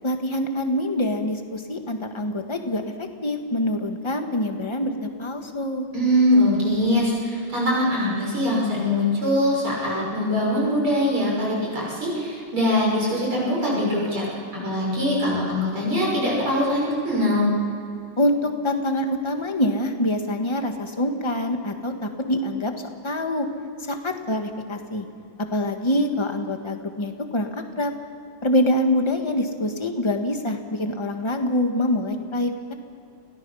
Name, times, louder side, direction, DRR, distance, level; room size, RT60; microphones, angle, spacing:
voice 1, 0.0-5.9 18.2-22.7 23.0-23.5 23.9-25.1 25.5-27.9 28.4-32.7, left 1 dB, 15° left, 4 dB, 1.5 m, -25 dB
voice 2, 5.9-14.3 14.5-17.5, left 1 dB, 90° right, -4 dB, 7.0 m, -22 dB
29.5 x 17.5 x 5.7 m, 2.5 s
omnidirectional pair, 2.3 m